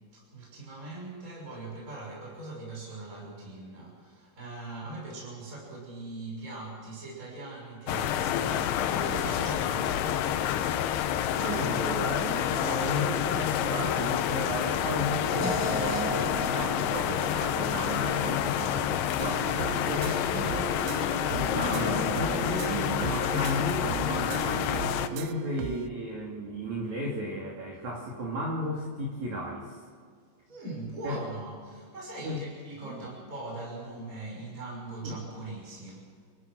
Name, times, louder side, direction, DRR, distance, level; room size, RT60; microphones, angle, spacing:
voice 1, 0.1-10.3 19.6-20.7 30.5-36.1, right 2 dB, 15° right, -3 dB, 6.1 m, -41 dB
sound 1, 7.9-25.1, left 10 dB, 80° left, 2.3 m, -28 dB
voice 2, 11.4-19.5 19.9-20.6 21.3-24.7 25.1-29.8 31.0-31.2 32.2-32.4 32.8-33.1 35.0-35.2, equal, 45° right, -2 dB, 3.2 m, -34 dB
sound 2, 15.4-18.5, right 1 dB, 30° left, 4.2 m, -36 dB
sound 3, 19.2-25.9, right 13 dB, 85° right, 2.5 m, -38 dB
28.5 x 14.5 x 6.3 m, 2.1 s
omnidirectional pair, 5.9 m